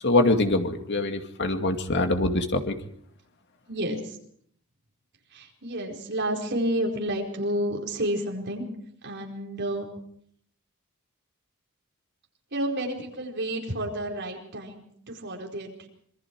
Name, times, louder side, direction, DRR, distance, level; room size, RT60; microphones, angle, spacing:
voice 1, 0.0-2.8, left 2 dB, 55° left, 6 dB, 2.3 m, -24 dB
voice 2, 3.7-4.0 5.3-8.7 9.0-9.9 12.5-15.9, right 1 dB, 55° right, 0 dB, 4.7 m, -30 dB
26.5 x 22.0 x 4.8 m, 0.65 s
head